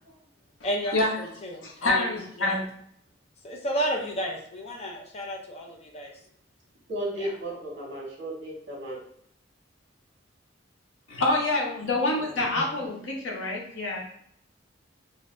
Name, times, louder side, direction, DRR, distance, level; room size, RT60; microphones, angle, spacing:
voice 1, 0.6-2.6 3.4-6.1 7.2-7.3, equal, 35° left, -1 dB, 0.5 m, -32 dB
voice 2, 1.6-2.6 11.1-13.0 13.2-14.0, left 2 dB, 85° left, -1 dB, 0.8 m, -26 dB
voice 3, 6.9-9.0, right 1 dB, 60° right, -2 dB, 1.1 m, -34 dB
2.7 x 2.6 x 3.1 m, 0.67 s
head